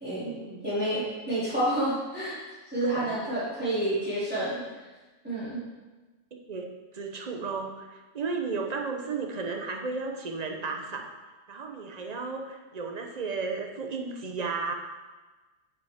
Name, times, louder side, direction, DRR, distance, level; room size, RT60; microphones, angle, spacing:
voice 1, 0.0-0.3 0.6-2.4 2.7-4.6 5.2-5.6, right 1 dB, 5° right, -11 dB, 2.7 m, -29 dB
voice 2, 2.8-3.2 6.3-11.1 11.5-14.7, right 4 dB, 40° right, 3 dB, 0.7 m, -34 dB
8.8 x 6.5 x 3.5 m, 1.2 s
omnidirectional pair, 1.4 m